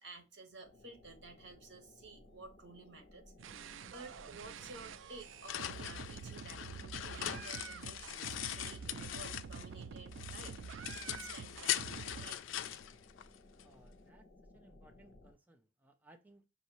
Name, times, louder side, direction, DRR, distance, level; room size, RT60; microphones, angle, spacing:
voice 1, 0.0-10.8 11.0-11.8 12.2-12.9, right 3 dB, 70° right, 1.2 m, -53 dB
sound 1, 0.6-15.3, left 2 dB, 75° left, 0.9 m, -60 dB
sound 2, 3.4-12.3, right 6 dB, 90° right, 0.4 m, -47 dB
sound 3, 5.0-9.8 10.1-13.7, left 11 dB, 90° left, 0.4 m, -41 dB
voice 2, 13.6-14.2 14.5-16.5, right 1 dB, 10° right, 0.5 m, -63 dB
5.5 x 2.7 x 2.9 m
head